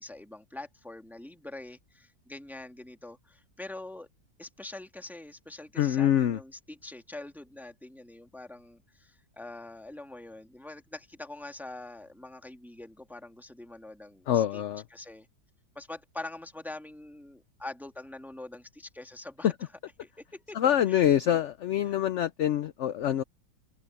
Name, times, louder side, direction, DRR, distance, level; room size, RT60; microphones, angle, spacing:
voice 1, 0.0-4.1 4.4-14.6 14.9-15.3 15.8-19.5 20.0-20.6 20.9-21.4 21.8-22.0, left 2 dB, ahead, 1.8 m, -44 dB
voice 2, 5.8-6.4 14.3-14.8 19.4-19.5 20.5-23.2, left 10 dB, 70° left, 0.7 m, -25 dB
omnidirectional pair, 1.8 m